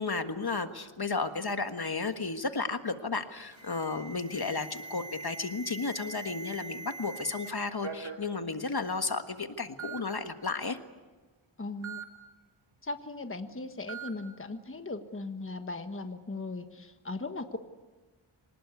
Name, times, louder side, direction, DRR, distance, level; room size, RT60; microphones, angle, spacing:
voice 1, 0.0-10.8, left 4 dB, 50° left, 8 dB, 1.6 m, -33 dB
Alarm, 3.5-7.5 7.8-8.2 9.1-9.2 9.8-10.0 11.8-12.0 13.9-14.1, right 4 dB, 70° right, 2.9 m, -42 dB
voice 2, 11.6-12.0 12.8-17.6, left 2 dB, 25° left, 7 dB, 1.4 m, -38 dB
25.5 x 19.0 x 8.4 m, 1.3 s
wide cardioid pair, 65°, 49 cm